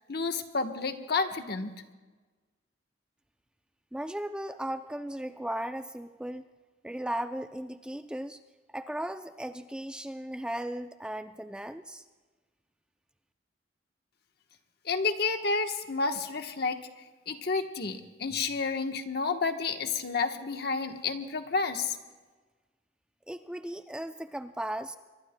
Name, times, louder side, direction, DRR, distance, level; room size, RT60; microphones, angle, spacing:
voice 1, 0.1-1.7 14.8-16.8 17.3-22.0, left 4 dB, 55° left, 6 dB, 1.1 m, -30 dB
voice 2, 3.9-6.4 6.8-8.4 8.7-12.0 23.3-25.0, right 1 dB, 5° right, 9 dB, 0.4 m, -36 dB
24.5 x 22.5 x 2.2 m, 1.3 s
head